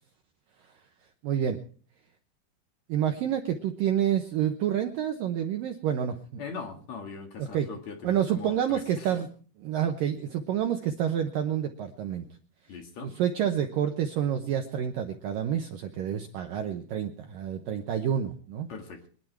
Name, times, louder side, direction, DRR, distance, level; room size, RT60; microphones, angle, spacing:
voice 1, 1.2-1.6 2.9-6.4 7.4-7.7 8.0-9.3 9.6-12.2 13.0-18.7, right 9 dB, 85° right, 5 dB, 2.0 m, -28 dB
voice 2, 6.4-9.2 12.7-13.1 18.7-19.1, left 5 dB, 50° left, 4 dB, 2.5 m, -41 dB
23.5 x 11.0 x 4.6 m, 0.43 s
omnidirectional pair, 5.4 m